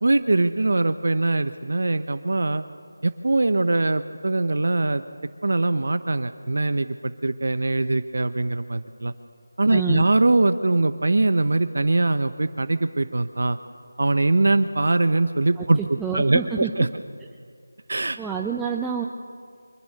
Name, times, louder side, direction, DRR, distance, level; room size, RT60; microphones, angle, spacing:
voice 1, 0.0-2.6 3.0-5.0 5.4-9.1 9.6-13.6 14.0-16.9 17.9-18.2, right 2 dB, 60° right, 11 dB, 0.9 m, -22 dB
voice 2, 9.7-10.0 15.6-15.7 16.0-16.7 18.2-19.1, right 6 dB, 5° right, -1 dB, 0.5 m, -28 dB
24.5 x 23.5 x 6.7 m, 2.2 s
figure-of-eight pair, 175°, 0 cm